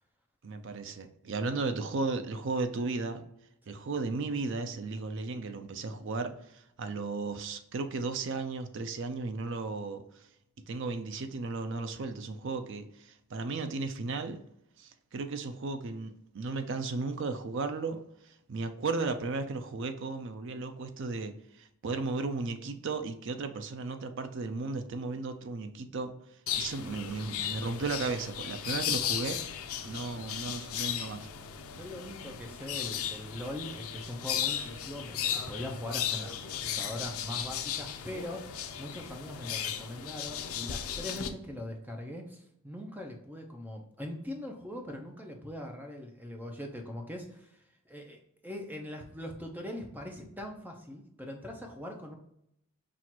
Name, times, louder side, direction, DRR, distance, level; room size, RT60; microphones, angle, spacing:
voice 1, 0.4-3.2 3.7-10.0 10.7-14.4 14.8-18.0 18.5-21.3 21.6-26.1 26.6-29.4 29.8-31.3, right 3 dB, 55° right, 8 dB, 0.4 m, -35 dB
sound 1, 26.5-41.3, left 9 dB, 70° left, 0.4 m, -36 dB
voice 2, 31.7-52.2, left 1 dB, 10° right, 2 dB, 0.6 m, -41 dB
5.9 x 2.5 x 2.8 m, 0.76 s
head